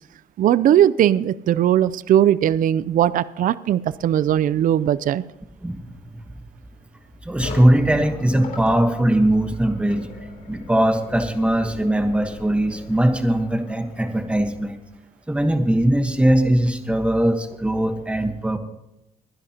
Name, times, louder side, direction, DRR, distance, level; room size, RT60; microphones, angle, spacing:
voice 1, 0.4-5.2, right 11 dB, 60° right, 17 dB, 0.4 m, -19 dB
voice 2, 5.6-6.2 7.2-10.1 10.5-14.8 15.3-18.6, right 1 dB, 5° right, 6 dB, 1.3 m, -20 dB
sound 1, 7.4-14.6, left 3 dB, 70° left, 3.7 m, -38 dB
23.5 x 10.5 x 2.9 m, 0.89 s
cardioid pair, 120°, 15 cm